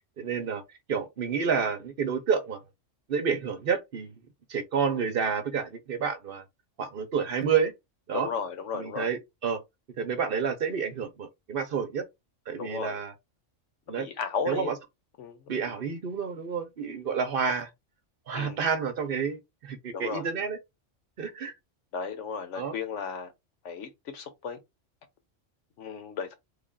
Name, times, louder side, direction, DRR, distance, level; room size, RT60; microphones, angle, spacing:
voice 1, 0.2-0.6 0.9-2.6 3.1-4.2 4.5-6.4 6.8-7.7 8.1-8.3 8.7-9.6 10.0-12.0 12.5-13.1 13.9-14.1 14.5-14.7 15.5-17.7 18.3-20.6 21.2-21.5 22.5-22.7, right 6 dB, 55° right, 0.8 m, -29 dB
voice 2, 8.1-9.1 12.5-13.0 14.0-14.8 15.2-15.4 18.3-18.6 19.9-20.2 21.9-23.3 23.6-24.6 25.8-26.3, left 6 dB, 75° left, 1.1 m, -34 dB
3.3 x 2.4 x 3.7 m
omnidirectional pair, 1.3 m